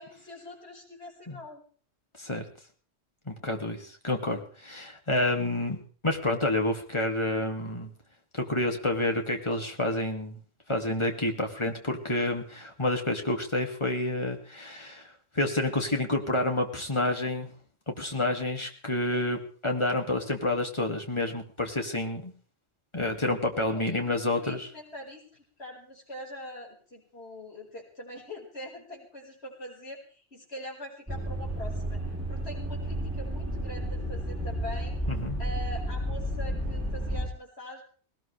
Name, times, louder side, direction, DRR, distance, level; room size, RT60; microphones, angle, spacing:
voice 1, 0.0-1.6 23.6-24.1 24.3-32.0 32.3-35.0 35.4-37.8, left 1 dB, 65° left, -1 dB, 5.5 m, -43 dB
voice 2, 3.3-5.8 6.0-7.9 8.3-10.4 10.7-15.1 15.3-17.5 17.9-22.3 22.9-24.7 35.1-35.4, left 1 dB, 25° left, 3 dB, 2.4 m, -29 dB
sound 1, 31.1-37.3, equal, 10° right, 4.2 m, -32 dB
19.5 x 18.5 x 3.4 m, 0.42 s
omnidirectional pair, 1.2 m